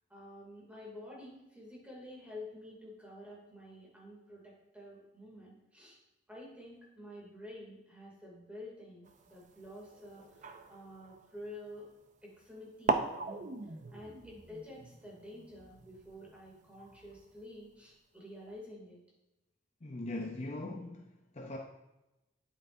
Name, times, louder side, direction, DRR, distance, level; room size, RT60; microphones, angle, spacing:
voice 1, 0.1-6.0 6.3-11.9 12.2-19.0, left 1 dB, 5° right, -4 dB, 2.5 m, -50 dB
sound 1, 9.1-12.0 12.5-12.6 12.9-17.5, right 3 dB, 40° right, 0.5 m, -40 dB
voice 2, 19.8-21.6, left 2 dB, 35° left, 1 dB, 0.6 m, -40 dB
9.3 x 8.5 x 2.6 m, 0.96 s
head